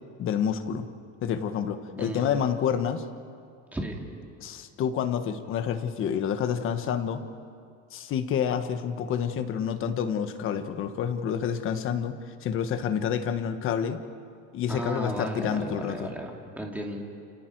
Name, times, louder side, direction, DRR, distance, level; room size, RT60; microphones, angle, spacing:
voice 1, 0.2-0.9 1.2-3.0 4.4-7.2 7.9-12.1 12.4-14.0 14.5-16.1, left 8 dB, 45° left, 8 dB, 1.3 m, -28 dB
voice 2, 1.9-2.3 3.7-3.9 14.7-17.0, right 1 dB, 5° right, 0 dB, 2.5 m, -34 dB
29.5 x 29.5 x 4.7 m, 2.3 s
cardioid pair, 175°, 30 cm